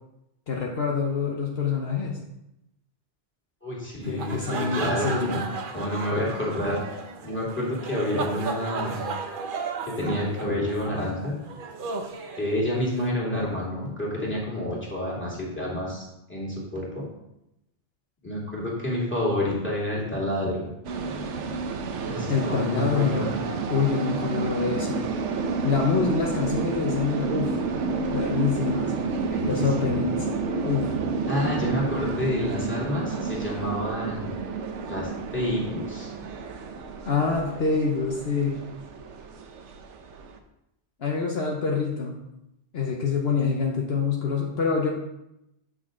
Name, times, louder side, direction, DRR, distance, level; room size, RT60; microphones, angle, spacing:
voice 1, 0.5-2.2 4.1-5.4 22.3-23.3 23.7-25.1 25.6-27.6 28.1-28.9 29.4-30.3 30.6-30.9 37.0-38.6 41.0-42.2 42.7-44.9, left 5 dB, 65° left, -1 dB, 1.2 m, -26 dB
voice 2, 3.6-5.5 5.7-6.8 7.2-9.1 9.8-11.4 12.4-17.0 18.2-20.7 22.1-23.3 29.3-30.0 31.3-34.4 34.9-36.1, left 1 dB, 10° left, -5 dB, 2.4 m, -29 dB
sound 1, 4.0-13.0, right 4 dB, 55° right, 0.9 m, -35 dB
sound 2, 20.8-40.4, right 4 dB, 90° right, 1.1 m, -30 dB
8.4 x 6.1 x 3.8 m, 0.86 s
omnidirectional pair, 1.2 m